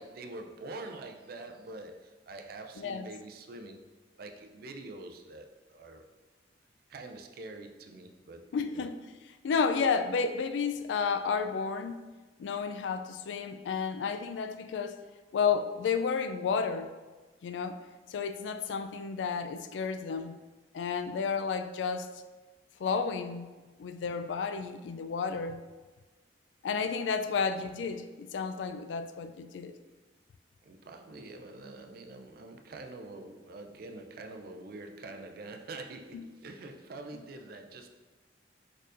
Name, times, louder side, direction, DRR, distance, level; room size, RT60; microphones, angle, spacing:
voice 1, 0.0-3.9 4.2-6.0 6.9-8.9 30.6-37.9, right 2 dB, 55° right, 0.4 m, -45 dB
voice 2, 8.5-9.0 9.4-12.0 12.4-15.0 15.3-16.9 17.4-17.8 18.1-20.3 20.7-22.1 22.8-23.5 23.8-25.6 26.6-29.7 36.1-36.2, left 5 dB, 90° left, 0.3 m, -31 dB
4.8 x 4.4 x 2.5 m
head